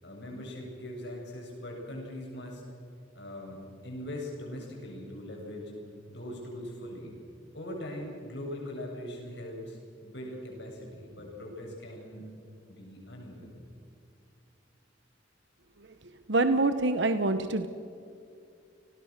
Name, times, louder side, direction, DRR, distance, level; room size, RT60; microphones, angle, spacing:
voice 1, 0.0-2.6 3.1-5.7 6.1-7.1 7.5-12.3 12.7-13.6, left 1 dB, 60° left, 0 dB, 7.6 m, -41 dB
voice 2, 16.3-17.7, right 2 dB, 65° right, 9 dB, 1.0 m, -26 dB
29.5 x 20.0 x 6.7 m, 2.5 s
head